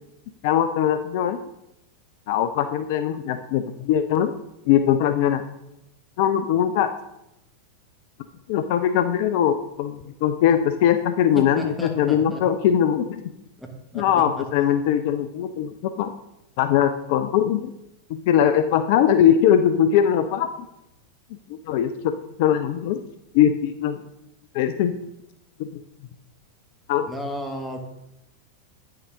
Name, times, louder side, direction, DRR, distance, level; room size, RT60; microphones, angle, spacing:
voice 1, 0.4-1.4 2.3-4.3 4.7-5.4 6.2-6.9 8.5-13.2 13.9-16.1 16.6-17.7 18.1-20.5 21.5-23.0 23.3-24.0 24.5-25.0 25.6-25.7 26.9-27.1, left 9 dB, 50° left, 9 dB, 0.4 m, -21 dB
voice 2, 11.3-12.4 13.6-13.7 13.9-14.0 14.4-14.5 27.1-27.8, equal, ahead, 1 dB, 1.4 m, -33 dB
9.0 x 6.5 x 3.6 m, 0.86 s
figure-of-eight pair, 90°, 0 cm